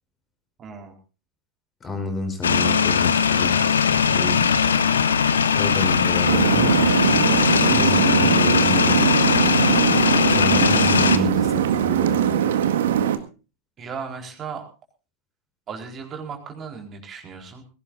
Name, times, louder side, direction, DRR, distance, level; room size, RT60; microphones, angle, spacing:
voice 1, 0.6-1.0 4.7-5.3 13.8-14.7 15.7-17.6, right 6 dB, 25° right, 3 dB, 4.2 m, -36 dB
voice 2, 1.8-3.7 4.1-4.5 5.5-6.9 7.8-9.2 10.3-12.4, left 1 dB, 20° left, 7 dB, 4.3 m, -30 dB
sound 1, 2.4-11.2, left 6 dB, 70° left, 1.4 m, -19 dB
sound 2, 6.3-13.2, right 9 dB, 60° right, 1.8 m, -21 dB
21.0 x 17.5 x 2.6 m, 0.34 s
figure-of-eight pair, 90°, 0 cm